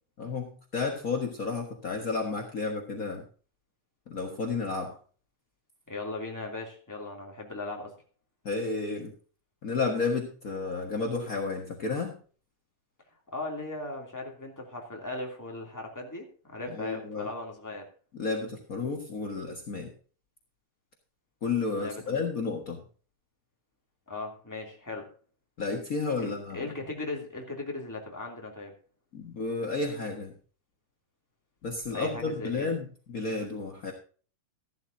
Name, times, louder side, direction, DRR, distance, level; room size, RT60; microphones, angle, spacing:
voice 1, 0.2-3.3 4.1-5.0 8.4-9.1 9.6-12.2 16.6-17.3 18.1-19.9 21.4-22.8 25.6-26.7 29.1-30.3 31.6-33.9, left 4 dB, 55° left, 2 dB, 0.9 m, -32 dB
voice 2, 5.9-7.9 13.3-17.9 21.8-22.2 24.1-25.1 26.2-28.7 31.9-32.7, left 2 dB, 5° left, 0 dB, 2.1 m, -38 dB
15.0 x 12.0 x 2.7 m, 0.39 s
omnidirectional pair, 4.1 m